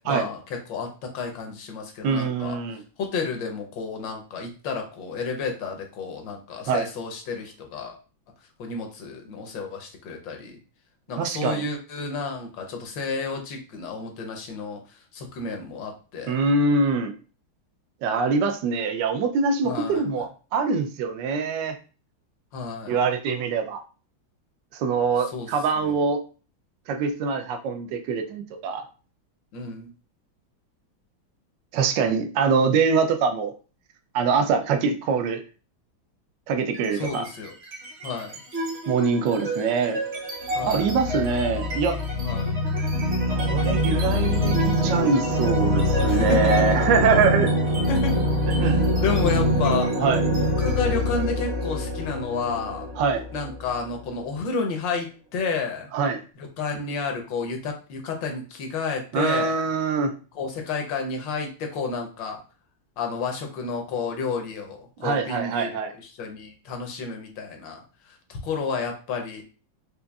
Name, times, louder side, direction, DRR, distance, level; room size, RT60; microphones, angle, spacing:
voice 1, 0.1-2.6 3.0-8.0 8.6-10.5 11.1-14.8 15.1-16.4 19.6-20.0 22.5-23.0 25.3-25.5 25.7-26.0 29.5-29.9 36.9-37.5 38.0-38.4 40.5-40.9 42.2-42.5 46.1-46.9 47.9-48.2 48.6-50.0 50.6-52.9 53.3-55.9 56.4-59.7 60.3-62.4 63.0-69.4, left 4 dB, 70° left, 3 dB, 1.4 m, -31 dB
voice 2, 2.0-2.8 6.7-6.9 11.2-11.6 16.3-17.1 18.0-21.8 22.9-23.8 24.7-26.2 26.9-28.8 31.7-33.5 34.1-35.4 36.5-37.3 38.9-40.0 40.6-42.0 43.3-47.5 48.6-48.8 50.0-50.2 53.0-53.2 55.9-56.2 59.1-60.1 65.0-65.9, right 5 dB, 75° right, 6 dB, 1.2 m, -24 dB
sound 1, 36.7-37.3 37.6-54.2, left 1 dB, 45° right, 0.9 m, -25 dB
5.1 x 2.5 x 2.3 m, 0.36 s
omnidirectional pair, 2.2 m